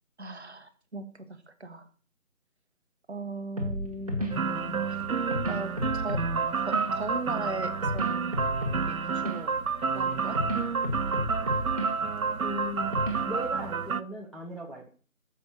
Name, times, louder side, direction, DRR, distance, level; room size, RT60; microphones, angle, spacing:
voice 1, 0.2-1.9 3.1-5.0 5.4-6.3 6.6-8.1 8.9-9.5 9.9-10.4, right 2 dB, 50° right, 11 dB, 1.1 m, -38 dB
sound 1, 3.6-13.7, equal, 25° right, 1.3 m, -34 dB
sound 2, 4.3-14.0, right 5 dB, 75° right, 0.6 m, -30 dB
voice 2, 12.4-12.9 13.2-14.9, equal, ahead, -4 dB, 0.5 m, -37 dB
7.0 x 4.9 x 6.3 m, 0.41 s
figure-of-eight pair, 160°, 43 cm